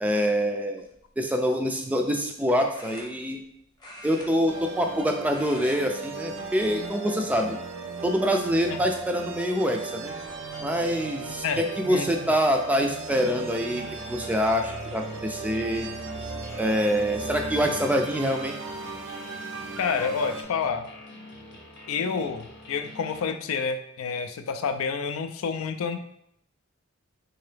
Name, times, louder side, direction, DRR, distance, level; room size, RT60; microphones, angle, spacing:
voice 1, 0.0-0.9 1.2-3.4 4.0-7.6 8.0-10.1 10.6-15.9 16.6-18.5, equal, 5° right, 3 dB, 0.3 m, -25 dB
sound 1, 0.8-1.1 2.7-3.5 3.8-5.0 5.2-5.8 6.1-6.4 7.2-7.7 8.3-8.4 9.8-9.9 10.2-10.6, left 1 dB, 20° left, 0.7 m, -45 dB
sound 2, 4.5-20.4, right 4 dB, 65° right, 0.6 m, -37 dB
voice 2, 11.9-12.3 19.8-20.9 21.9-26.0, left 5 dB, 75° left, 7 dB, 0.4 m, -29 dB
sound 3, 13.1-23.3, left 2 dB, 55° left, 0.8 m, -46 dB
3.6 x 2.8 x 3.3 m, 0.71 s
head